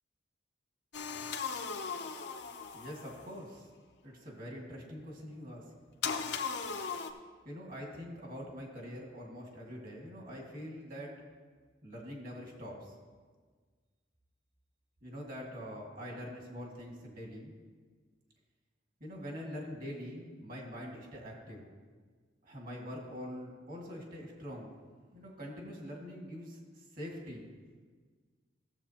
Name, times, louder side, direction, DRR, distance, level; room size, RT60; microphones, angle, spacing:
sound 1, 0.9-3.4 6.0-7.1, left 6 dB, 55° left, 0.6 m, -37 dB
voice 1, 2.7-3.7 4.0-5.6 7.4-11.1 11.8-12.9 15.0-17.5 19.0-21.7 22.4-24.7 25.1-27.6, equal, 45° right, -1 dB, 2.0 m, -44 dB
14.5 x 7.6 x 2.9 m, 1.5 s
head